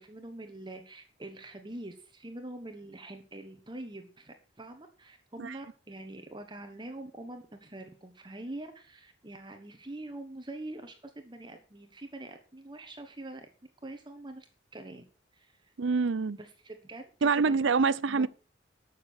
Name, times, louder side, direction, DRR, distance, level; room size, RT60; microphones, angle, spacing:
voice 1, 0.0-13.5 13.8-14.5 14.7-15.0 15.3-15.7 16.3-17.7 18.1-18.3, right 1 dB, 25° right, 1.3 m, -44 dB
voice 2, 15.8-16.4 17.2-18.3, right 4 dB, 70° right, 0.5 m, -26 dB
12.5 x 6.8 x 6.3 m
head